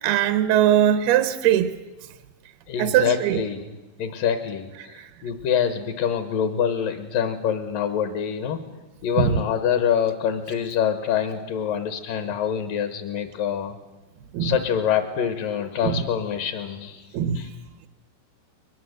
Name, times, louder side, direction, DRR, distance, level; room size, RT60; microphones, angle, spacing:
voice 1, 0.0-1.7 2.8-3.4 4.9-5.1 9.2-9.4 14.3-14.6 15.8-16.0 17.1-17.5, right 11 dB, 75° right, 2.4 m, -21 dB
voice 2, 2.7-8.6 9.0-13.8 14.4-17.1 17.3-17.5, left 8 dB, 70° left, 2.3 m, -25 dB
22.5 x 21.0 x 8.0 m
omnidirectional pair, 5.2 m